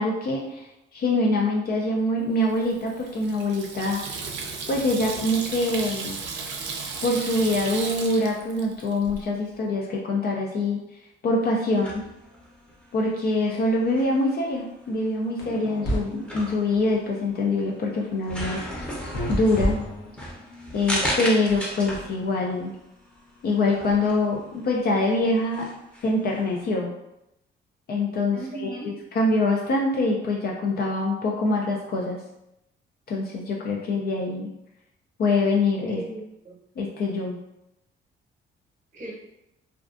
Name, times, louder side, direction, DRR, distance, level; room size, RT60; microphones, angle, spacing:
voice 1, 0.0-4.3 4.7-6.2 7.0-10.8 11.2-11.9 12.9-19.0 19.3-19.8 20.7-22.8 23.4-25.7 26.0-26.9 27.9-32.2 33.1-34.5 35.2-36.0 36.8-37.3, left 2 dB, 50° left, -1 dB, 0.4 m, -24 dB
Water tap faucet / Sink (filling or washing), 2.5-9.2, right 4 dB, 65° right, 0.4 m, -35 dB
sound 1, 11.7-26.7, equal, 5° left, 0.7 m, -36 dB
sound 2, 15.4-16.0 19.1-20.3, left 1 dB, 70° left, 0.8 m, -28 dB
voice 2, 28.3-28.9 35.9-36.6 38.9-39.1, right 1 dB, 40° right, -2 dB, 0.8 m, -37 dB
2.4 x 2.3 x 2.4 m, 0.86 s
cardioid pair, 90°, 20 cm